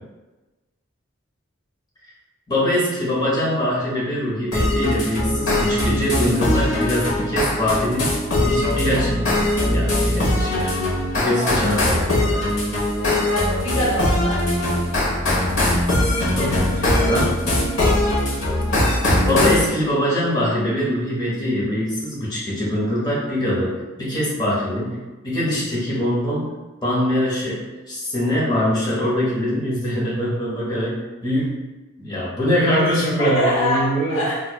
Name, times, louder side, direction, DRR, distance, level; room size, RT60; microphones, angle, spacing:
voice 1, 2.5-8.1 8.4-9.2 9.7-10.8 11.1-12.6 15.6-17.3 19.2-26.5 26.8-31.6 32.0-34.3, equal, 20° left, -8 dB, 1.0 m, -23 dB
sound 1, 4.5-19.7, left 1 dB, 90° left, 1.1 m, -21 dB
voice 2, 11.2-11.5 13.0-14.4 16.4-16.6 16.9-17.1 33.2-34.4, equal, 70° left, -5 dB, 0.8 m, -25 dB
4.5 x 2.4 x 2.2 m, 1.2 s
head